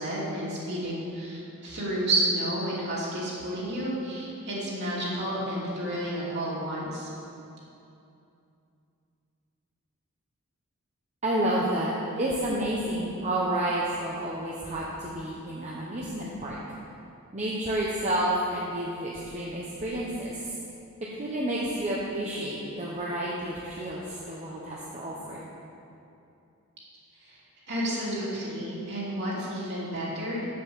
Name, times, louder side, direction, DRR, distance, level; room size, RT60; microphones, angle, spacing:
voice 1, 0.0-7.1 27.2-27.4 27.7-30.4, right 1 dB, 50° right, -6 dB, 2.9 m, -31 dB
voice 2, 11.2-16.6 17.3-20.5 21.2-25.4, right 1 dB, 30° right, -5 dB, 1.0 m, -30 dB
7.8 x 7.8 x 7.0 m, 2.6 s
head